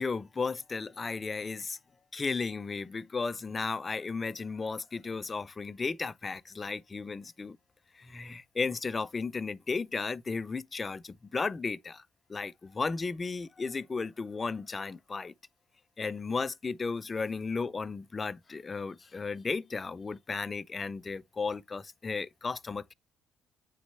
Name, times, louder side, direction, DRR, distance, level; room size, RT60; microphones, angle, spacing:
voice 1, 0.0-1.8 2.1-7.6 7.9-12.0 12.3-15.3 16.0-22.9, left 4 dB, 30° left, 0.5 m, -34 dB
9.1 x 4.0 x 3.3 m
supercardioid pair, 75°, 0 cm